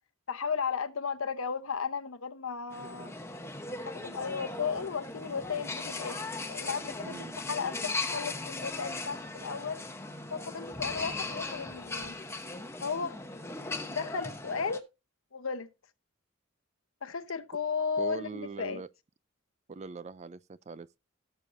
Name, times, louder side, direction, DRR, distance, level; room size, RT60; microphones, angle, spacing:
voice 1, 0.3-3.1 3.7-7.1 7.5-9.8 10.3-12.1 12.8-13.4 13.9-14.9 15.3-15.7 17.0-18.8, left 5 dB, 75° left, 0.9 m, -35 dB
sound 1, 2.7-14.8, left 3 dB, 10° left, 1.0 m, -38 dB
voice 2, 7.0-7.4 18.0-18.9 19.7-21.0, right 4 dB, 35° right, 0.4 m, -42 dB
17.5 x 6.9 x 2.6 m
head